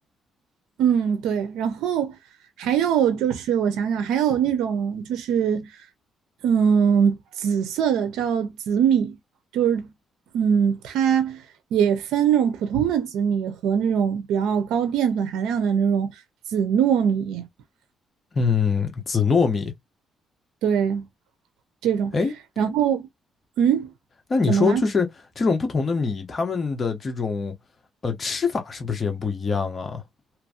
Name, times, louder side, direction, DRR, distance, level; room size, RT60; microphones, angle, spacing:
voice 1, 0.8-2.1 2.6-5.7 6.4-9.2 9.5-9.9 10.3-11.4 11.7-16.1 16.5-17.5 20.6-21.0 21.8-22.1 22.6-23.1 23.6-23.9 24.5-24.8, right 8 dB, 90° right, 0.5 m, -22 dB
voice 2, 18.3-19.7 22.1-22.3 24.3-25.1 25.4-27.5 28.0-30.0, left 5 dB, 35° left, 1.0 m, -23 dB
3.0 x 2.6 x 2.3 m
cardioid pair, 90°, 0 cm